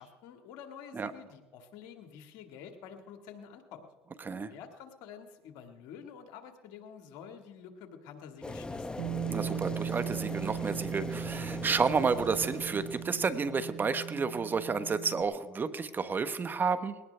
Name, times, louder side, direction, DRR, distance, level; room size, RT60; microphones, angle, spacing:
voice 1, 0.0-3.9 4.5-9.0, left 7 dB, 75° left, 5 dB, 1.9 m, -49 dB
sound 1, 8.4-13.8, left 2 dB, 15° left, 0.9 m, -41 dB
Bass guitar, 9.0-15.2, right 10 dB, 70° right, 1.4 m, -38 dB
voice 2, 9.3-17.0, right 5 dB, 30° right, 11 dB, 1.1 m, -31 dB
21.0 x 18.0 x 3.4 m, 1.2 s
supercardioid pair, 80°, 6 cm